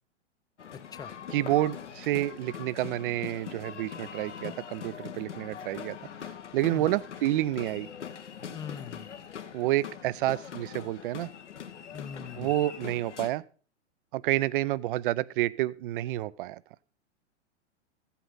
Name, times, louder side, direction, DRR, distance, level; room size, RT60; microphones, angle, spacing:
sound 1, 0.6-13.3, left 8 dB, 75° left, 1.3 m, -42 dB
voice 1, 1.3-6.0 6.5-7.9 9.5-11.3 12.4-13.4 14.1-16.6, right 15 dB, 45° right, 20 dB, 0.5 m, -29 dB
voice 2, 8.5-9.1 11.9-12.5, left 7 dB, 10° left, 12 dB, 0.6 m, -41 dB
14.5 x 8.2 x 3.9 m, 0.40 s
figure-of-eight pair, 105°, 36 cm